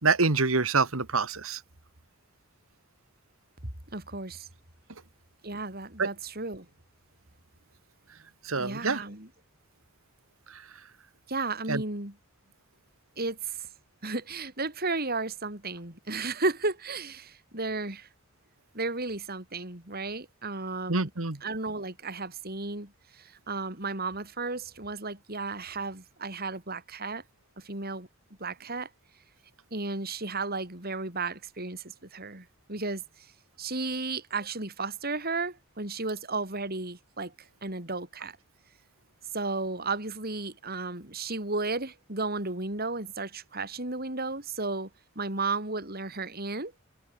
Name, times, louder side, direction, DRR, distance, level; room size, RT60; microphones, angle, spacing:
voice 1, 0.0-1.6 6.0-6.1 8.4-9.0 10.5-10.6 11.7-11.8 20.9-21.4, right 4 dB, 80° right, 1.9 m, -26 dB
voice 2, 3.9-4.5 5.4-6.7 8.6-9.3 11.3-12.2 13.2-13.7 14.0-18.1 18.7-21.1 21.4-27.2 27.6-28.1 28.4-28.9 29.7-33.0 33.6-37.3 37.6-38.4 39.3-44.9 45.2-46.7, right 3 dB, 45° right, 5.7 m, -34 dB
head